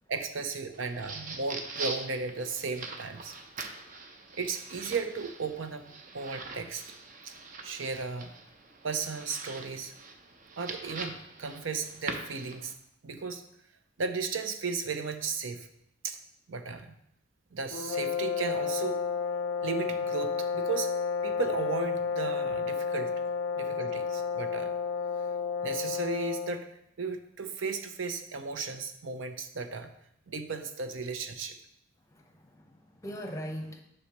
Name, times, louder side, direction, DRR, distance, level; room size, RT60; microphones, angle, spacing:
voice 1, 0.1-3.7 4.3-6.8 7.2-7.3 7.6-8.3 8.8-9.9 10.6-12.7 13.0-13.4 14.0-15.7 16.0-16.2 16.5-16.9 17.5-19.0 19.6-23.1 23.5-24.7 25.6-26.7 27.0-29.9 30.3-31.6, right 4 dB, 90° right, 8 dB, 0.7 m, -35 dB
sound 1, 0.7-12.7, right 3 dB, 45° right, 0.6 m, -43 dB
sound 2, 17.7-26.7, left 5 dB, 80° left, 0.4 m, -31 dB
voice 2, 32.0-33.8, equal, 15° left, 4 dB, 0.8 m, -41 dB
8.4 x 5.4 x 3.0 m, 0.75 s
head